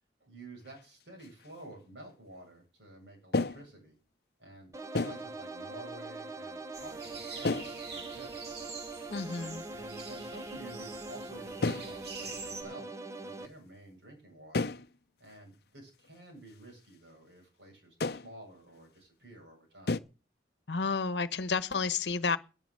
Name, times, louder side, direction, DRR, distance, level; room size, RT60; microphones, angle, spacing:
voice 1, 0.2-4.0 4.4-4.7 5.0-8.8 9.7-14.7 15.2-19.9, right 1 dB, 80° right, 7.9 m, -51 dB
sound 1, 0.6-0.8 1.2-1.5 3.3-3.8 4.9-5.3 7.4-7.8 8.9-9.0 9.4-9.8 10.1-10.3 10.6-11.0 11.6-11.9 14.5-14.9 15.3-15.4 16.0-16.1 18.0-18.3 19.9-20.0, left 3 dB, 60° left, 0.6 m, -32 dB
sound 2, 4.7-13.5, right 2 dB, 15° right, 0.6 m, -43 dB
sound 3, 6.7-12.6, right 4 dB, 60° right, 2.5 m, -46 dB
voice 2, 9.1-9.6 20.7-22.4, left 4 dB, 75° left, 1.0 m, -31 dB
11.0 x 10.5 x 6.6 m
head